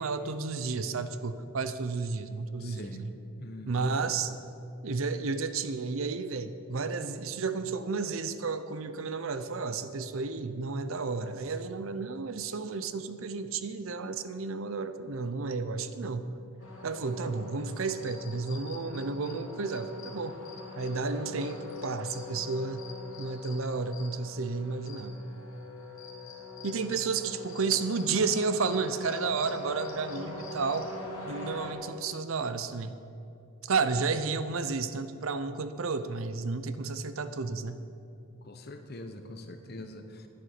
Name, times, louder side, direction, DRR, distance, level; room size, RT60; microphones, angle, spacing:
voice 1, 0.0-3.1 3.7-4.3 4.8-16.3 16.8-20.4 20.8-22.9 23.2-25.2 26.6-30.9 31.3-32.9 33.6-37.8, right 4 dB, 70° right, 12 dB, 0.6 m, -32 dB
voice 2, 2.6-3.1 3.4-4.0 26.9-27.0 38.4-40.3, left 1 dB, 45° left, 7 dB, 0.9 m, -43 dB
sound 1, 16.6-31.7, left 3 dB, 65° left, 2.5 m, -43 dB
11.0 x 9.5 x 6.7 m, 2.7 s
head